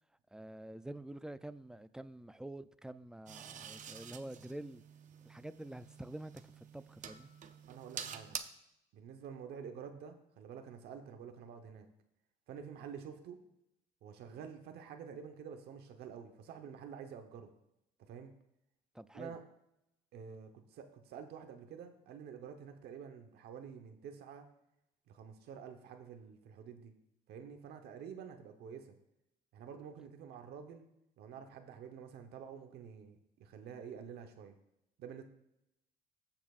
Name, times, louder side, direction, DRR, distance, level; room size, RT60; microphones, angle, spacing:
voice 1, 0.3-4.8 5.2-6.3 6.7-7.3 18.9-19.3, right 1 dB, 5° right, 0.4 m, -47 dB
sound 1, 3.3-8.4, right 8 dB, 45° right, 0.7 m, -48 dB
voice 2, 7.7-8.4 8.9-11.9 12.5-13.4 14.0-17.5 18.1-18.3 19.1-19.4 20.1-24.5 25.1-26.9 27.3-29.0 29.5-30.8 31.2-34.6 35.0-35.2, right 7 dB, 70° right, 1.0 m, -49 dB
15.0 x 5.9 x 2.5 m
cardioid pair, 110°, 17 cm